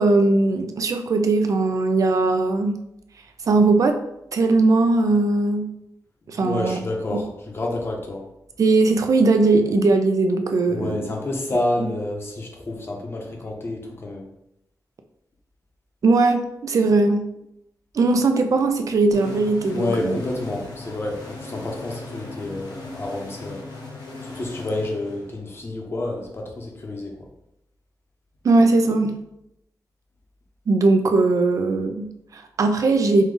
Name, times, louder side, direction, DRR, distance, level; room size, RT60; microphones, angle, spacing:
voice 1, 0.0-2.8 3.5-4.0 4.3-5.7 6.3-6.8 7.1-7.2 8.6-11.1 16.0-17.3 17.9-20.2 28.4-29.2 30.7-33.2, right 3 dB, 55° right, 6 dB, 0.5 m, -19 dB
voice 2, 6.4-8.2 10.7-14.3 19.7-23.6 24.2-27.3, left 2 dB, 35° left, 0 dB, 0.9 m, -29 dB
sound 1, 19.1-25.6, left 2 dB, 85° left, 1.1 m, -38 dB
5.2 x 2.4 x 3.8 m, 0.80 s
wide cardioid pair, 155°, 7 cm